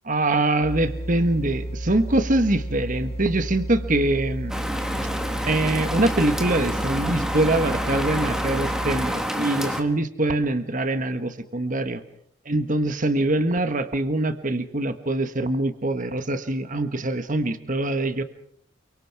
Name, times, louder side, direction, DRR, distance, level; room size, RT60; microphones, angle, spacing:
voice 1, 0.0-4.6 5.5-12.0 12.4-18.2, right 2 dB, 40° right, 9 dB, 1.4 m, -24 dB
sound 1, 0.6-9.3, right 1 dB, 30° left, 5.3 m, -32 dB
Rain, 4.5-9.8, equal, 5° right, 1.8 m, -28 dB
29.5 x 24.0 x 4.8 m, 0.66 s
head